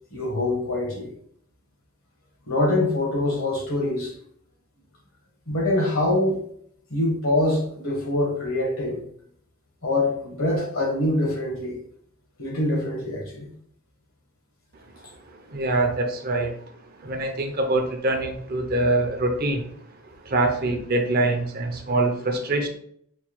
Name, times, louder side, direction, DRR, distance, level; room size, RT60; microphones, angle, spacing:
voice 1, 0.1-1.1 2.5-4.2 5.5-6.4 6.9-9.0 9.8-11.8 12.4-13.5, left 1 dB, 70° left, -1 dB, 1.3 m, -24 dB
voice 2, 15.3-19.7 20.0-22.7, right 2 dB, 45° right, 4 dB, 0.6 m, -25 dB
4.6 x 2.3 x 2.9 m, 0.65 s
head